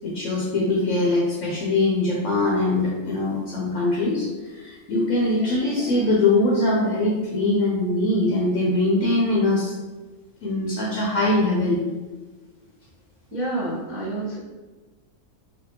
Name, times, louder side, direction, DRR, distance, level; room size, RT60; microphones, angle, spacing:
voice 1, 0.0-9.7 10.4-11.8, left 2 dB, 70° left, -4 dB, 0.9 m, -22 dB
voice 2, 13.3-14.4, right 2 dB, 15° left, -7 dB, 0.7 m, -28 dB
3.4 x 2.4 x 2.7 m, 1.3 s
omnidirectional pair, 1.4 m